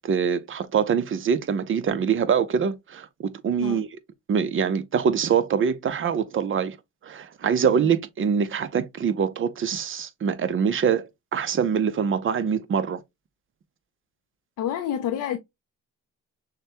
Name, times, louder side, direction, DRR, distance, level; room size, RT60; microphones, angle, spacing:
voice 1, 0.0-4.0 4.3-6.8 7.0-13.0, right 7 dB, 40° right, 0.7 m, -24 dB
voice 2, 14.6-15.4, left 10 dB, 85° left, 0.6 m, -28 dB
6.4 x 2.2 x 2.8 m
cardioid pair, 90°, 30 cm